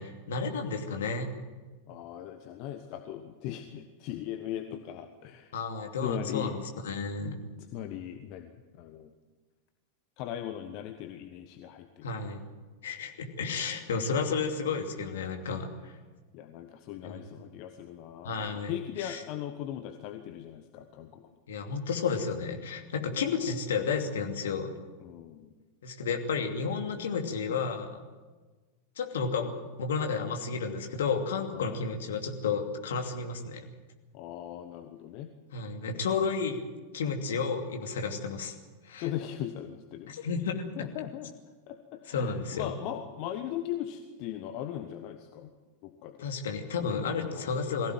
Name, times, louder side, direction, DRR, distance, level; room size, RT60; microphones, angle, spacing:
voice 1, 0.0-1.3 5.5-7.4 12.0-12.4 12.8-15.9 17.0-17.3 18.2-18.7 19.0-19.2 21.5-24.7 25.8-28.0 29.0-29.5 29.8-33.7 35.5-36.6 36.9-38.6 38.8-39.1 40.1-40.6 42.1-42.7 46.2-47.9, left 5 dB, 60° left, 4 dB, 2.7 m, -32 dB
voice 2, 1.9-5.5 6.0-6.5 7.7-9.1 10.2-12.1 16.3-21.3 25.0-25.5 31.5-31.8 34.1-35.3 39.0-40.1 40.8-41.3 41.7-45.5 45.8-46.2 47.0-47.5, left 11 dB, 45° left, 7 dB, 1.3 m, -39 dB
22.0 x 16.0 x 9.3 m, 1.3 s
figure-of-eight pair, 90°, 0 cm